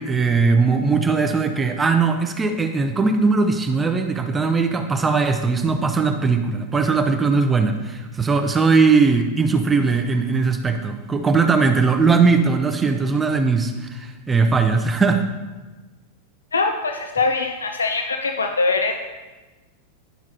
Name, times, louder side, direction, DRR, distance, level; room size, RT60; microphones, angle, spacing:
voice 1, 0.0-15.3, right 4 dB, 15° right, 6 dB, 0.5 m, -19 dB
voice 2, 16.5-18.9, left 3 dB, 75° left, 5 dB, 0.4 m, -22 dB
10.0 x 5.8 x 2.8 m, 1.2 s
figure-of-eight pair, 90°, 0 cm